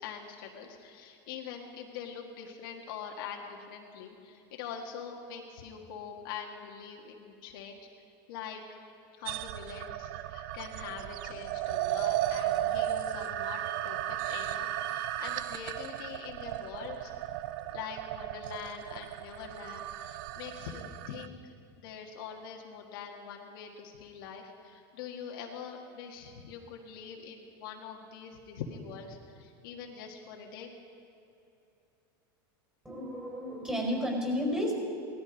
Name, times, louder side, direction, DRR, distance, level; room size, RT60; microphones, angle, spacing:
voice 1, 0.0-8.0 8.3-8.8 9.2-17.1 17.7-21.4 21.8-30.7, left 7 dB, 70° left, 1 dB, 1.8 m, -44 dB
sound 1, 9.3-21.3, right 13 dB, 65° right, 0.5 m, -35 dB
voice 2, 32.8-34.7, left 1 dB, 10° right, 0 dB, 4.8 m, -32 dB
18.0 x 13.5 x 5.2 m, 2.7 s
supercardioid pair, 135°, 12 cm